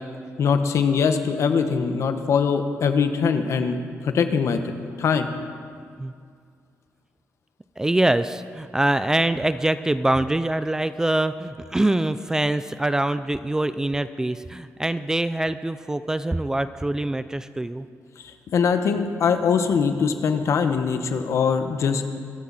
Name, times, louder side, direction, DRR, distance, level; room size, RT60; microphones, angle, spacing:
voice 1, 0.4-4.7 5.0-5.3 18.2-22.1, left 6 dB, 60° left, 8 dB, 1.3 m, -22 dB
voice 2, 7.8-17.9, right 1 dB, 10° right, 13 dB, 0.4 m, -24 dB
24.5 x 13.5 x 4.2 m, 2.2 s
cardioid pair, 130°, 5 cm